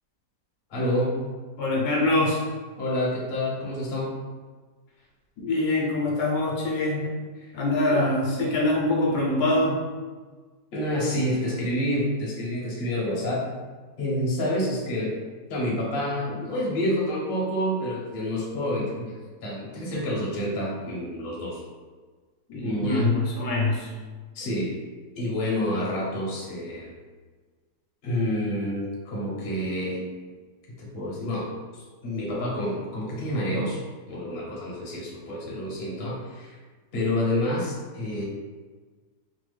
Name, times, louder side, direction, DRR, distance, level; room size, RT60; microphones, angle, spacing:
voice 1, 0.7-1.2 2.8-4.2 7.4-7.5 7.9-8.0 10.7-13.5 14.0-15.1 15.5-19.1 19.4-21.6 22.6-23.1 24.3-24.7 25.2-26.9 28.0-30.1 30.8-33.8 34.1-36.6 36.9-38.2, left 1 dB, 45° left, -5 dB, 0.8 m, -28 dB
voice 2, 1.6-2.4 5.4-7.1 7.5-9.8 22.5-23.9, left 2 dB, 70° left, -3 dB, 1.1 m, -24 dB
3.3 x 2.0 x 3.3 m, 1.4 s
omnidirectional pair, 1.8 m